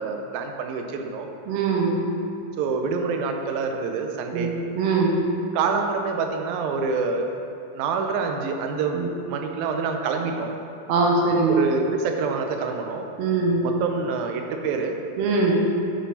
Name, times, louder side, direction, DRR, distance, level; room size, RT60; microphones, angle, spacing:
voice 1, 0.0-1.3 2.6-4.5 5.5-7.3 7.8-9.0 9.3-10.6 11.5-13.0 13.6-15.0, right 5 dB, 90° right, 4 dB, 2.4 m, -26 dB
voice 2, 1.5-1.9 4.3-4.5 4.7-5.1 8.9-9.1 10.9-11.5 13.2-13.6 15.2-15.5, right 4 dB, 70° right, -2 dB, 1.5 m, -21 dB
8.5 x 5.5 x 4.1 m, 2.6 s
omnidirectional pair, 4.1 m